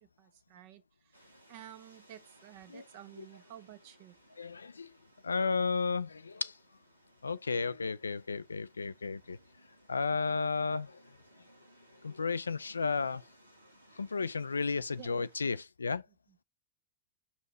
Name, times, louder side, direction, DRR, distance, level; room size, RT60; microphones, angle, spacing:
voice 1, 0.2-4.1 15.0-15.2, right 11 dB, 50° right, 1.4 m, -52 dB
sound 1, 1.1-15.6, right 1 dB, 85° right, 1.8 m, -63 dB
voice 2, 4.4-5.0 5.2-6.6 7.2-9.4 9.9-11.0 12.0-13.2 14.0-16.1, left 4 dB, 75° left, 0.5 m, -33 dB
6.3 x 5.6 x 4.3 m
figure-of-eight pair, 90°, 0 cm